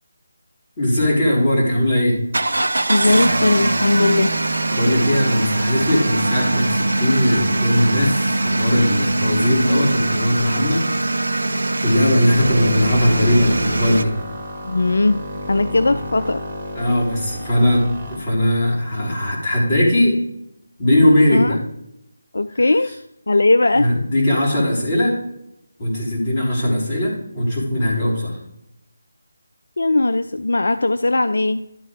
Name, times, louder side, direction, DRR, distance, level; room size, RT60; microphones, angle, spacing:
voice 1, 0.8-2.2 4.7-10.8 11.7-14.1 16.7-20.2 20.8-21.6 23.8-25.2 25.8-28.4, left 1 dB, 25° left, -5 dB, 3.4 m, -19 dB
sound 1, 2.3-14.0, right 2 dB, 65° right, 0.7 m, -21 dB
voice 2, 2.9-4.3 14.6-15.2 15.5-16.4 21.3-21.6 22.3-22.9 23.3-23.9 29.8-31.6, left 2 dB, 65° left, 11 dB, 0.3 m, -18 dB
sound 2, 12.4-18.2, left 1 dB, 30° right, 2.4 m, -31 dB
11.5 x 4.2 x 4.9 m, 0.82 s
figure-of-eight pair, 155°, 0 cm